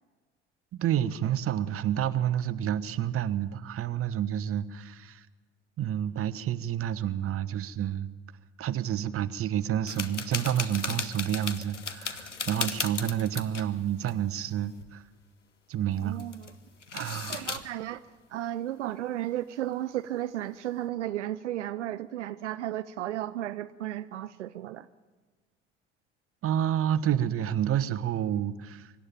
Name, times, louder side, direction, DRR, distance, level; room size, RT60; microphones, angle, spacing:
voice 1, 0.7-5.3 5.8-8.1 8.6-15.0 15.7-16.2 16.9-17.5 26.4-28.9, right 10 dB, 40° right, 14 dB, 1.1 m, -29 dB
sound 1, 9.9-13.7 14.0-14.2 14.5-14.8 15.9-16.6 16.8-17.6, left 5 dB, 90° left, 1.0 m, -36 dB
voice 2, 16.0-16.5 17.3-18.0 18.3-24.9, right 13 dB, 80° right, 13 dB, 0.6 m, -34 dB
24.5 x 12.0 x 8.9 m, 1.3 s
figure-of-eight pair, 60°, 35 cm